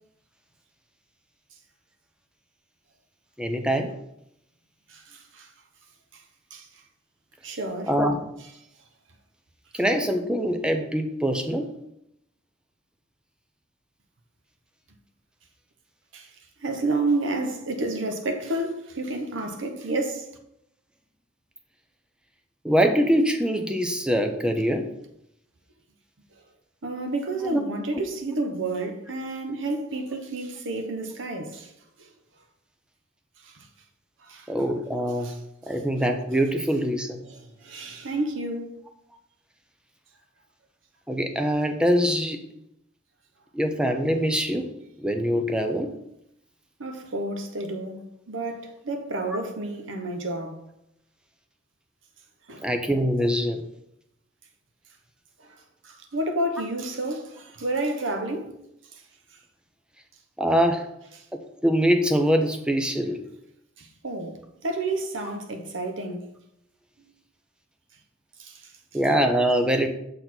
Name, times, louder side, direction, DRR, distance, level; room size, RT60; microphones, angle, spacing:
voice 1, 3.4-3.9 7.9-8.2 9.7-11.7 22.6-24.9 27.5-27.6 34.5-35.3 35.7-37.2 41.1-42.4 43.5-44.7 45.0-45.9 52.6-53.6 60.4-60.9 61.6-63.2 68.9-69.9, equal, 5° right, 0.6 m, -23 dB
voice 2, 4.9-5.5 6.1-6.2 6.5-6.7 7.4-7.9 16.1-16.3 16.6-20.4 26.8-31.7 32.0-32.1 33.4-33.7 34.2-34.5 35.2-35.4 37.2-38.8 46.8-50.6 52.5-52.7 55.4-55.5 55.8-58.5 58.9-59.0 63.8-66.3 68.4-68.7, right 2 dB, 70° right, 0.9 m, -30 dB
6.6 x 4.2 x 4.4 m
head